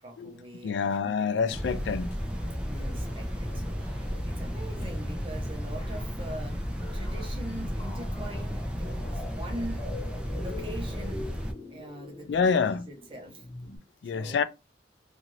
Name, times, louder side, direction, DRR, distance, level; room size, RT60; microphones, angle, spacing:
voice 1, 0.0-1.6 2.6-9.9 10.3-11.3 11.7-13.5 14.1-14.4, right 1 dB, 30° right, 0.8 m, -43 dB
voice 2, 0.6-2.2 12.3-12.9 14.0-14.4, left 5 dB, 70° left, 0.3 m, -27 dB
sound 1, 1.5-11.5, equal, 5° right, 0.4 m, -33 dB
sound 2, 2.2-13.8, left 2 dB, 30° left, 1.4 m, -46 dB
2.6 x 2.5 x 3.0 m
head